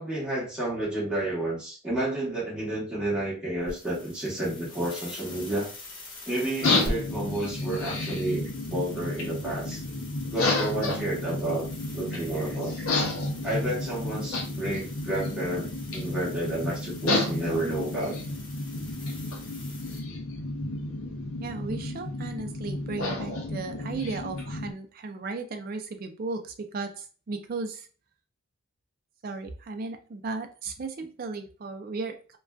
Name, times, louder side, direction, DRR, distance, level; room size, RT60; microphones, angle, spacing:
voice 1, 0.0-5.7 6.3-9.8 10.3-11.7 11.9-12.9 13.4-18.2, right 1 dB, 5° right, -7 dB, 1.0 m, -31 dB
sound 1, 3.6-20.0, left 1 dB, 60° left, 0.9 m, -44 dB
sound 2, 6.6-24.7, left 2 dB, 80° left, 0.6 m, -31 dB
voice 2, 21.4-27.9 29.2-32.4, right 3 dB, 45° right, 6 dB, 0.4 m, -35 dB
2.5 x 2.2 x 2.3 m, 0.36 s
head